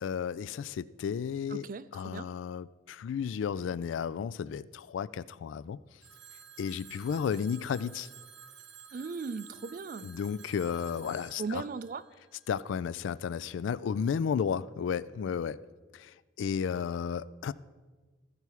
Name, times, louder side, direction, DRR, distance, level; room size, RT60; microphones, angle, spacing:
voice 1, 0.0-1.7 1.9-5.8 6.6-8.1 10.0-11.6 12.5-15.6 15.9-17.5, left 7 dB, 85° left, 0.3 m, -33 dB
voice 2, 1.5-2.3 8.9-10.1 11.4-12.0, right 4 dB, 45° right, 0.3 m, -38 dB
Telephone, 6.0-12.8, right 8 dB, 70° right, 0.9 m, -52 dB
15.0 x 5.7 x 4.7 m
head